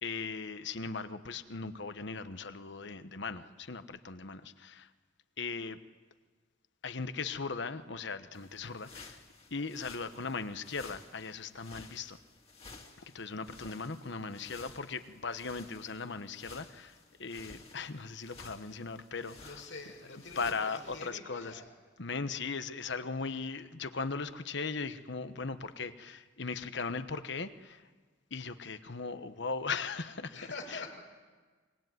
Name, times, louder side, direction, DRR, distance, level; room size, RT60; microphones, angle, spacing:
voice 1, 0.0-4.9 5.4-5.8 6.8-9.2 9.5-12.2 13.1-19.6 20.4-21.6 22.0-27.8 28.3-30.4 30.7-30.8, left 4 dB, 65° left, 11 dB, 1.2 m, -38 dB
sound 1, 8.3-21.1, left 3 dB, 35° left, 2.5 m, -54 dB
voice 2, 19.4-21.7 30.3-31.0, left 3 dB, 85° left, 1 dB, 6.1 m, -45 dB
26.0 x 23.0 x 9.4 m, 1.4 s
head